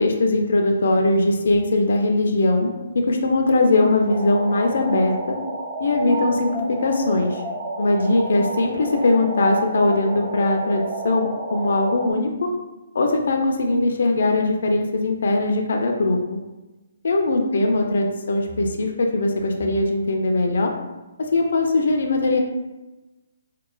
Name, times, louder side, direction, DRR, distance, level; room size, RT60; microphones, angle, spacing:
voice 1, 0.0-5.4 5.8-7.4 7.8-12.5 12.9-16.4 17.0-20.7 21.2-22.4, left 2 dB, 65° left, 2 dB, 0.4 m, -20 dB
sound 1, 4.1-12.1, right 2 dB, 25° right, 0.4 m, -31 dB
2.9 x 2.0 x 2.4 m, 1.1 s
figure-of-eight pair, 140°, 0 cm